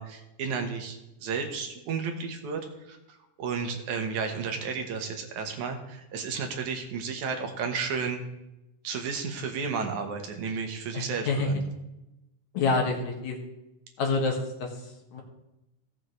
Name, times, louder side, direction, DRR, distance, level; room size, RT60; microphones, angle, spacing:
voice 1, 0.0-8.2 8.8-11.7, right 5 dB, 75° right, 4 dB, 2.6 m, -33 dB
voice 2, 10.9-11.6 12.5-13.4 14.0-15.2, left 3 dB, 70° left, 1 dB, 2.9 m, -28 dB
17.0 x 7.6 x 3.2 m, 0.94 s
omnidirectional pair, 3.5 m